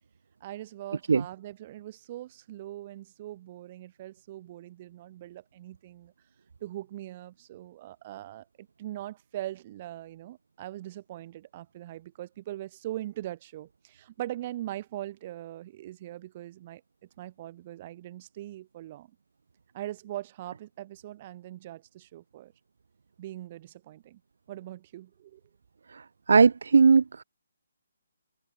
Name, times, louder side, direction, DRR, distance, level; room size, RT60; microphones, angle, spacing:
voice 1, 0.4-6.1 6.6-16.8 17.2-19.1 19.7-22.5 23.2-24.2 24.5-25.4, right 14 dB, 35° right, 5.9 m, -41 dB
voice 2, 26.3-27.2, right 5 dB, 60° right, 0.5 m, -18 dB
figure-of-eight pair, 140°, 0 cm